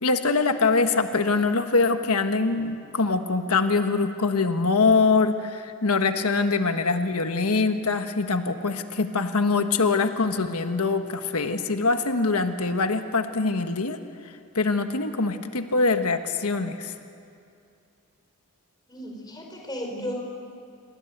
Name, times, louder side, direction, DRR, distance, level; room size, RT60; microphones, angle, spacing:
voice 1, 0.0-14.0 14.5-16.9, left 4 dB, 90° left, 7 dB, 1.4 m, -23 dB
voice 2, 18.9-20.1, equal, 20° left, 1 dB, 4.7 m, -34 dB
28.0 x 22.5 x 8.1 m, 2.5 s
head